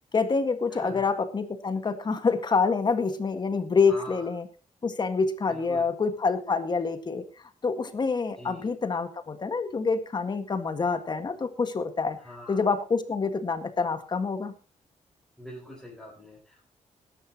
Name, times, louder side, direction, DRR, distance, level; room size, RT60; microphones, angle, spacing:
voice 1, 0.1-4.5 4.8-7.2 7.6-12.2 12.5-14.5, left 4 dB, 35° left, 9 dB, 1.8 m, -27 dB
voice 2, 0.7-1.1 3.9-4.3 5.5-5.9 8.4-8.7 12.2-12.6 15.4-16.7, left 1 dB, ahead, -5 dB, 5.2 m, -43 dB
20.0 x 11.5 x 3.0 m, 0.32 s
wide cardioid pair, 135°, 12 cm